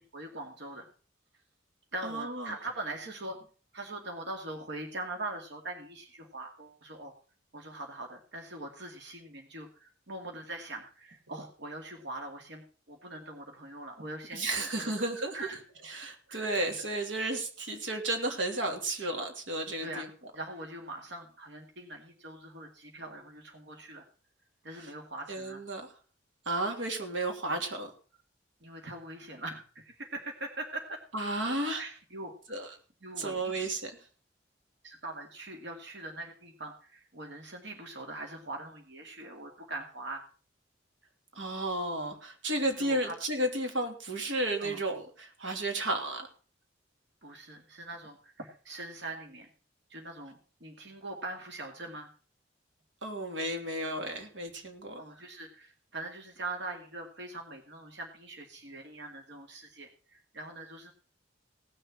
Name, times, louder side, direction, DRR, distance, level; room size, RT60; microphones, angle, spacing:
voice 1, 0.1-0.9 1.9-3.5 3.7-7.1 7.5-14.9 15.3-15.6 16.3-16.8 19.8-20.1 20.3-24.0 24.6-25.6 28.6-31.0 31.8-32.3 33.0-33.7 34.8-40.2 42.8-43.2 44.6-44.8 47.2-49.5 49.9-52.1 55.0-60.9, right 2 dB, 65° right, 3 dB, 2.3 m, -42 dB
voice 2, 2.0-2.5 14.3-15.4 15.9-20.1 25.3-25.9 26.5-27.9 31.1-31.8 32.5-32.7 33.2-34.0 41.4-46.3 53.0-55.0, right 1 dB, 90° right, 4 dB, 3.0 m, -33 dB
18.0 x 6.8 x 5.9 m, 0.39 s
head